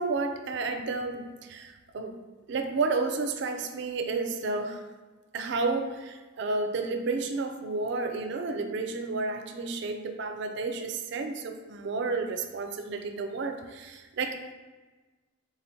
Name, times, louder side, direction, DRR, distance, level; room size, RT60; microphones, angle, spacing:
voice 1, 0.0-2.2 2.5-4.8 5.3-14.5, right 3 dB, 55° right, 7 dB, 0.4 m, -31 dB
4.3 x 3.8 x 2.7 m, 1.3 s
head